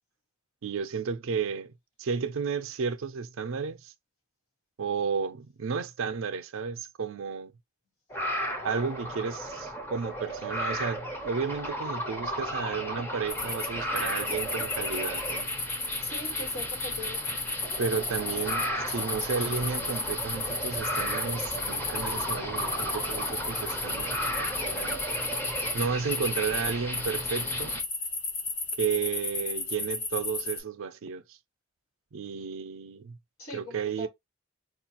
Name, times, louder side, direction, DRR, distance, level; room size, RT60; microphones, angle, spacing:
voice 1, 0.6-1.7 2.0-3.9 4.8-7.5 8.6-15.5 17.8-25.0 25.7-27.7 28.8-31.4 32.1-33.2 33.5-34.1, right 5 dB, 75° right, 0.4 m, -33 dB
sound 1, 8.1-27.8, equal, 10° left, 0.6 m, -34 dB
sound 2, 13.3-13.7 13.9-30.6, left 3 dB, 55° left, 1.2 m, -34 dB
voice 2, 16.0-17.4 33.4-34.1, left 1 dB, 85° left, 1.7 m, -41 dB
4.4 x 2.4 x 2.8 m
head